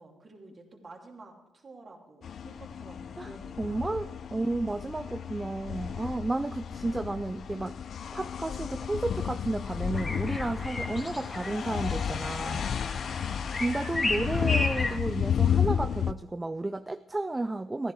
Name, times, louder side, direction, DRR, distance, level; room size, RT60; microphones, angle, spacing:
voice 1, 0.0-4.2 13.0-13.3, right 3 dB, 35° right, 0 dB, 2.8 m, -51 dB
sound 1, 2.2-16.1, left 8 dB, 55° left, 0.4 m, -32 dB
voice 2, 3.6-7.7 8.1-12.7 13.5-17.9, right 2 dB, 15° right, 10 dB, 0.4 m, -32 dB
sound 2, 9.9-15.0, left 2 dB, 25° left, 1.6 m, -34 dB
14.5 x 10.5 x 4.7 m, 0.95 s
cardioid pair, 90°, 0 cm